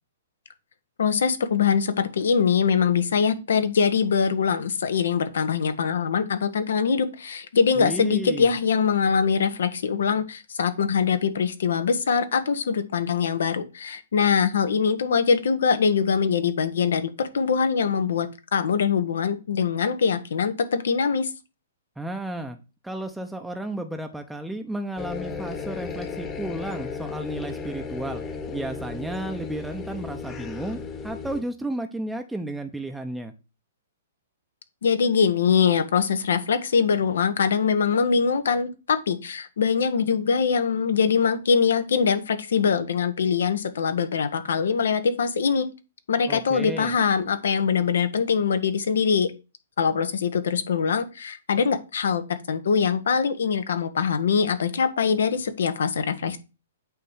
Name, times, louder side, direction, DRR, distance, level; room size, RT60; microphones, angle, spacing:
voice 1, 1.0-18.3 18.5-21.3 34.8-45.7 46.1-49.3 49.8-56.4, left 6 dB, 75° left, 10 dB, 1.2 m, -23 dB
voice 2, 7.8-8.5 22.0-22.6 22.8-28.2 28.5-30.8 31.0-33.3 46.3-47.0, right 1 dB, 5° right, 5 dB, 0.8 m, -33 dB
sound 1, 25.0-31.4, left 4 dB, 20° left, 1.3 m, -35 dB
8.5 x 3.1 x 5.6 m, 0.29 s
hypercardioid pair, 125°, 0 cm